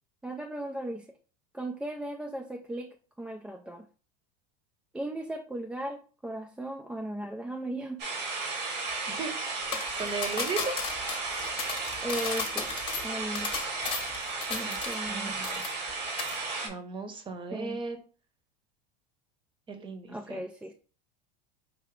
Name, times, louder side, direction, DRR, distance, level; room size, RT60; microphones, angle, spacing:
voice 1, 0.2-1.2 1.5-3.9 4.9-8.0 12.0-12.7 13.0-13.5 14.5-15.4 17.5-17.8 20.1-20.7, right 1 dB, 5° right, 2 dB, 0.3 m, -37 dB
sound 1, 8.0-16.7, right 3 dB, 90° right, 1.7 m, -34 dB
voice 2, 9.1-9.7 10.0-10.8 14.6-14.8 15.1-15.6 16.6-18.0 19.7-20.4, right 4 dB, 25° right, 8 dB, 0.8 m, -36 dB
sound 2, 9.7-15.2 15.4-15.9 16.2-16.4, left 6 dB, 25° left, 1.0 m, -35 dB
4.8 x 2.8 x 3.1 m, 0.37 s
supercardioid pair, 125°, 20 cm